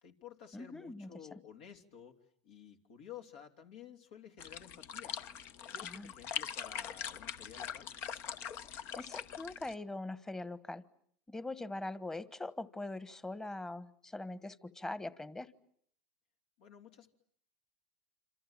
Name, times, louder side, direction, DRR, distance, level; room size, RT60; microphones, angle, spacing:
voice 1, 0.0-2.2 2.4-5.1 5.7-7.9 16.6-17.1, left 8 dB, 75° left, 4 dB, 3.3 m, -53 dB
voice 2, 0.5-1.4 5.8-6.1 8.9-10.8 11.3-15.5, left 2 dB, 10° left, 15 dB, 1.3 m, -42 dB
sound 1, 4.4-9.7, left 8 dB, 50° left, 1.0 m, -42 dB
27.5 x 27.0 x 7.4 m, 0.66 s
hypercardioid pair, 100°, 5 cm